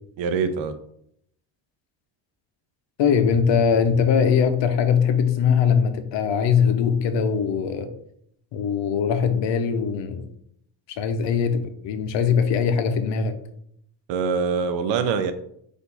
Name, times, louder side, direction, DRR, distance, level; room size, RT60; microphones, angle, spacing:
voice 1, 0.2-0.7 14.1-15.3, right 5 dB, 75° right, 8 dB, 0.6 m, -24 dB
voice 2, 3.0-7.9 8.5-10.2 10.9-13.3, left 6 dB, 70° left, 8 dB, 0.7 m, -21 dB
4.5 x 2.7 x 4.0 m, 0.70 s
cardioid pair, 125°, 45 cm